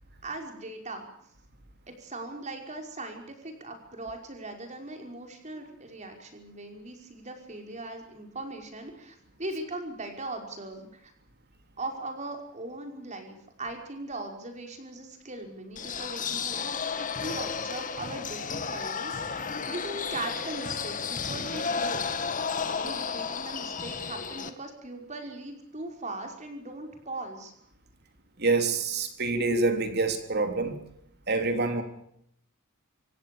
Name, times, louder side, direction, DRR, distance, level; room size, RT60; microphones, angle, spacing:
voice 1, 0.2-1.0 1.9-11.1 11.8-19.4 19.7-22.0 22.3-27.5, right 2 dB, 35° right, 4 dB, 5.4 m, -39 dB
sound 1, 15.8-24.5, left 5 dB, 40° left, 1.8 m, -33 dB
voice 2, 28.4-30.8 31.3-31.8, right 3 dB, 50° right, 7 dB, 3.4 m, -26 dB
26.5 x 16.5 x 7.0 m, 0.71 s
head